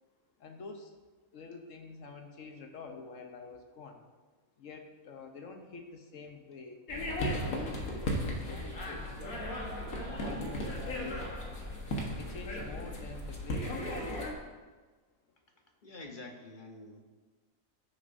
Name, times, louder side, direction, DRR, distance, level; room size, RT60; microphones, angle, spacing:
voice 1, 0.4-0.9 1.3-4.0 4.6-6.8 7.4-9.1 10.2-11.2 12.2-14.3, left 4 dB, 70° left, 4 dB, 1.2 m, -47 dB
sound 1, 6.9-14.3, left 1 dB, 85° left, 1.7 m, -36 dB
voice 2, 15.8-17.0, left 2 dB, 40° left, 2 dB, 1.0 m, -47 dB
15.5 x 6.6 x 2.6 m, 1.3 s
omnidirectional pair, 1.4 m